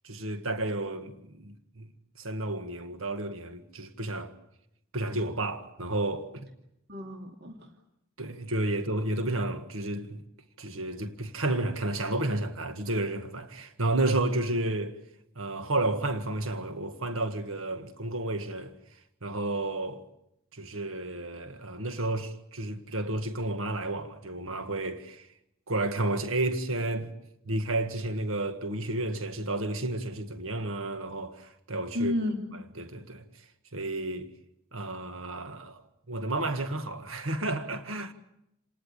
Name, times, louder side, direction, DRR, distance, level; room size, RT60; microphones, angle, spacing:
voice 1, 0.0-1.9 2.2-4.4 4.9-6.5 8.2-10.2 10.6-15.0 15.4-20.0 20.5-25.3 25.7-27.1 27.5-32.1 32.8-34.3 34.7-35.8 36.1-38.1, right 2 dB, 65° right, 1.8 m, -31 dB
voice 2, 6.9-7.7 31.9-32.6, left 2 dB, 45° right, 2.7 m, -32 dB
28.5 x 19.0 x 8.4 m
head